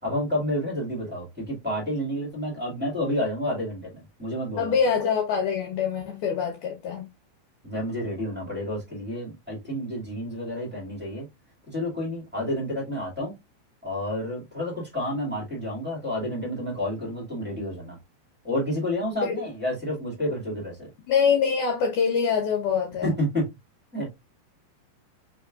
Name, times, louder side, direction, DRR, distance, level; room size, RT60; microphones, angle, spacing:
voice 1, 0.0-4.7 7.6-11.3 11.7-13.3 13.8-18.0 18.4-20.9 23.0-23.5 23.9-24.2, left 1 dB, 5° right, 1.0 m, -30 dB
voice 2, 4.6-7.1 19.1-19.3 21.1-23.2, left 6 dB, 70° left, 2.2 m, -24 dB
5.2 x 3.5 x 2.4 m
omnidirectional pair, 4.0 m